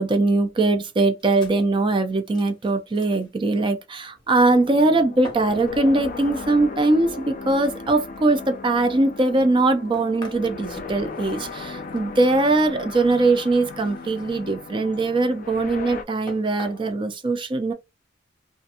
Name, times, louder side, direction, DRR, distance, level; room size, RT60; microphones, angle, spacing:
voice 1, 0.0-17.7, right 2 dB, 25° right, 0.4 m, -21 dB
sound 1, 1.2-3.3 4.1-4.8 5.2-6.5 7.2-7.3 7.9-12.2 12.8-14.5 14.9-15.5 15.9-16.0 16.3-16.9, left 1 dB, 25° left, 0.7 m, -45 dB
sound 2, 4.4-16.0, left 4 dB, 45° left, 0.4 m, -36 dB
2.4 x 2.2 x 2.8 m
head